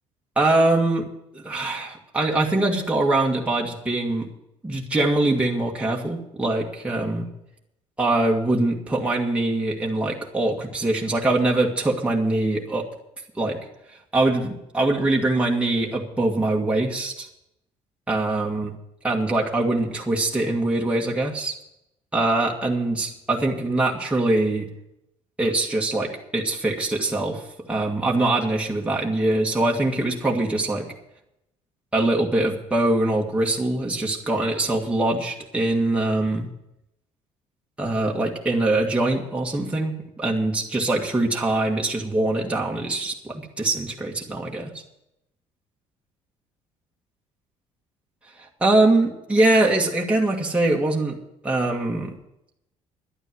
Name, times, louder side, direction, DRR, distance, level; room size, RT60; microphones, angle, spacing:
voice 1, 0.4-1.1 1.3-4.3 4.6-7.3 8.0-12.9 13.4-13.6 14.1-17.3 18.1-18.7 19.0-21.5 22.1-24.7 25.4-27.4 27.7-30.9 31.9-36.5 37.8-44.7 48.4-51.2 51.4-52.1, right 2 dB, 10° right, -2 dB, 1.8 m, -23 dB
11.5 x 9.0 x 7.7 m, 0.83 s
cardioid pair, 95°, 13 cm